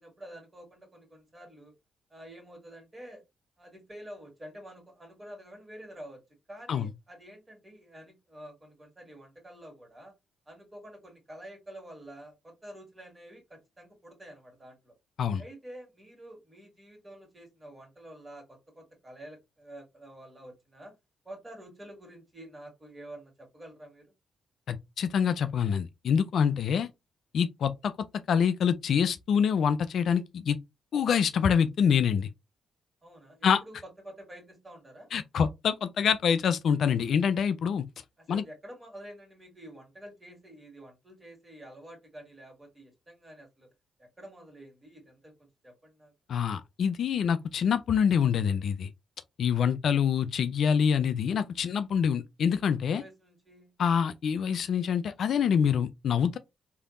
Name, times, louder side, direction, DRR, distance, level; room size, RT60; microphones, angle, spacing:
voice 1, 0.0-1.7 2.1-3.2 3.6-6.2 6.5-10.1 10.5-14.9 15.4-21.0 21.2-24.1 33.0-35.1 38.2-43.7 44.0-46.1 52.8-53.7, right 1 dB, 25° right, 2.0 m, -48 dB
voice 2, 24.7-26.9 27.3-27.9 28.3-30.6 30.9-32.3 33.4-33.6 35.1-37.8 38.3-38.4 46.3-48.9 49.4-53.0 53.8-56.4, left 7 dB, 60° left, 0.3 m, -26 dB
3.3 x 2.7 x 2.5 m
hypercardioid pair, 40°, 0 cm